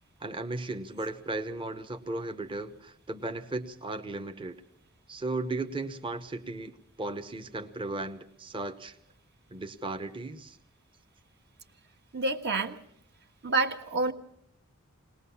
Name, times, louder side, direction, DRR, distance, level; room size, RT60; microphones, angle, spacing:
voice 1, 0.2-4.6 5.1-9.0 9.5-10.6, right 2 dB, 25° right, 7 dB, 1.0 m, -36 dB
voice 2, 12.1-12.8 13.4-14.1, right 3 dB, 50° right, 5 dB, 1.6 m, -28 dB
21.5 x 19.0 x 7.0 m, 0.69 s
head